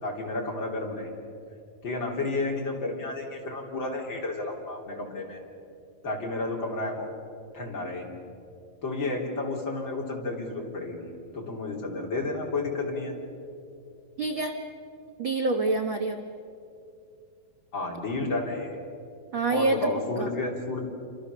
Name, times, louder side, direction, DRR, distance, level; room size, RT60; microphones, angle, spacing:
voice 1, 0.0-1.1 1.8-5.4 6.0-7.1 7.5-8.1 8.8-13.2 17.7-18.8 19.5-20.8, left 2 dB, 30° left, -1 dB, 3.9 m, -31 dB
voice 2, 14.2-14.5 15.2-16.2 19.3-19.9 20.2-20.3, right 3 dB, 90° right, 4 dB, 1.0 m, -26 dB
28.5 x 26.5 x 6.8 m, 2.5 s
omnidirectional pair, 4.3 m